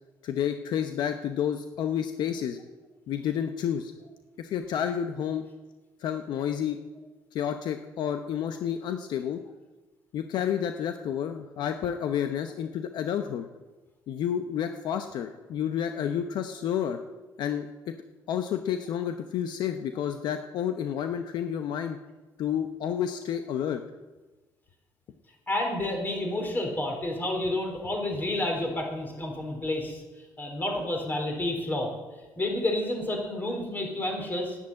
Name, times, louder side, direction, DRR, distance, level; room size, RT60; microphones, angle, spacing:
voice 1, 0.2-2.6 3.1-3.9 4.4-5.4 6.0-6.8 7.3-9.4 10.1-13.5 14.1-17.0 17.4-17.9 18.3-22.0 22.4-23.8, left 9 dB, 70° left, 7 dB, 0.8 m, -30 dB
voice 2, 25.5-30.0 30.4-31.9 32.4-34.6, left 1 dB, 25° left, 2 dB, 4.3 m, -30 dB
10.5 x 10.0 x 8.6 m, 1.2 s
cardioid pair, 95°, 8 cm